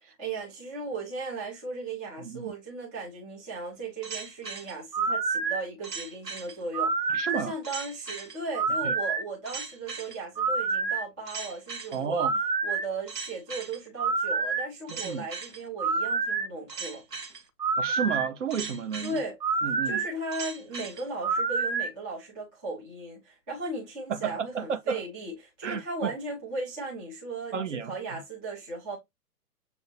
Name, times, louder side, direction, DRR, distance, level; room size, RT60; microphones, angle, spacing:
voice 1, 0.0-12.3 12.6-17.0 19.0-19.4 19.8-29.0, right 3 dB, 5° right, 0.5 m, -37 dB
voice 2, 2.2-2.5 7.1-7.5 8.8-8.9 11.9-12.3 14.9-15.3 17.8-19.2 19.6-20.0 24.1-25.0 25.6-26.1 27.5-28.2, right 6 dB, 50° right, 0.8 m, -32 dB
sound 1, 4.0-21.9, right 4 dB, 85° right, 1.0 m, -29 dB
7.0 x 2.7 x 2.8 m
figure-of-eight pair, 120°, 48 cm